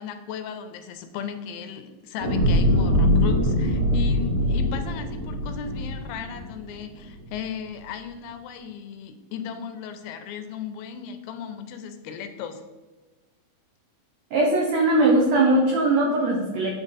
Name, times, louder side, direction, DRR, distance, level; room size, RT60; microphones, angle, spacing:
voice 1, 0.0-12.6, left 7 dB, 85° left, 8 dB, 2.5 m, -36 dB
sound 1, 2.2-6.7 7.2-7.3, left 1 dB, 45° right, 2.7 m, -22 dB
voice 2, 14.3-16.7, right 2 dB, 90° right, 0 dB, 1.5 m, -20 dB
9.1 x 3.7 x 4.1 m, 1.3 s
omnidirectional pair, 4.2 m